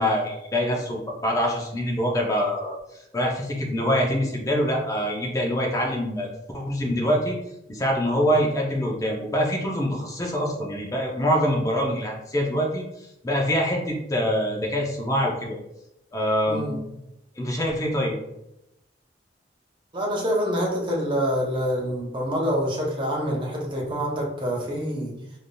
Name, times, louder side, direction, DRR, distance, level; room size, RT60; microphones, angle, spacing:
voice 1, 0.0-6.3 6.5-7.3 7.7-12.8 13.2-15.6 16.1-16.8 17.4-18.2, equal, 20° left, -1 dB, 0.5 m, -25 dB
voice 2, 16.5-16.8 19.9-25.1, equal, 25° right, -2 dB, 0.6 m, -26 dB
3.3 x 2.5 x 2.2 m, 0.87 s
head